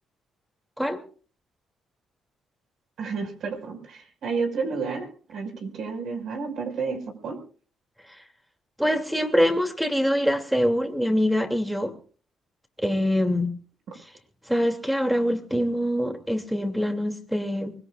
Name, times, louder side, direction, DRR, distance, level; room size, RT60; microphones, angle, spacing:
voice 1, 3.0-7.4, right 4 dB, 70° right, 4 dB, 5.8 m, -31 dB
voice 2, 8.8-11.9 12.8-13.5 14.5-17.7, equal, 5° right, 5 dB, 2.8 m, -24 dB
24.5 x 21.0 x 2.5 m, 0.41 s
cardioid pair, 90°, 0 cm